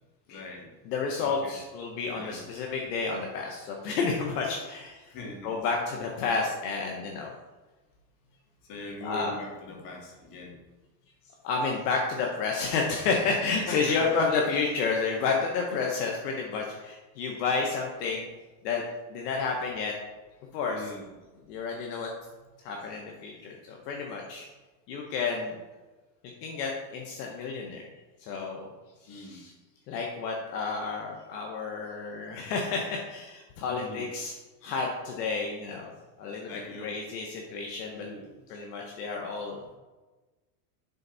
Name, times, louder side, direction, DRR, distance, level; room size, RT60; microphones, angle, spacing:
voice 1, 0.3-0.7 1.2-1.6 2.1-2.4 5.1-5.5 8.6-10.6 13.4-14.2 20.6-21.2 29.1-29.4 33.7-34.1 36.5-37.0 37.9-38.3, left 2 dB, 40° left, -2 dB, 2.6 m, -41 dB
voice 2, 0.8-5.1 5.4-7.3 9.0-9.4 11.4-18.3 18.6-18.8 19.1-19.9 20.5-20.8 21.5-22.1 22.6-24.5 24.9-25.5 26.4-27.8 28.2-28.7 29.0-29.5 29.9-34.3 34.6-35.9 36.2-36.5 36.8-38.1 38.5-39.8, left 4 dB, 70° left, 0 dB, 1.5 m, -30 dB
11.0 x 4.1 x 4.2 m, 1.2 s
supercardioid pair, 135°, 49 cm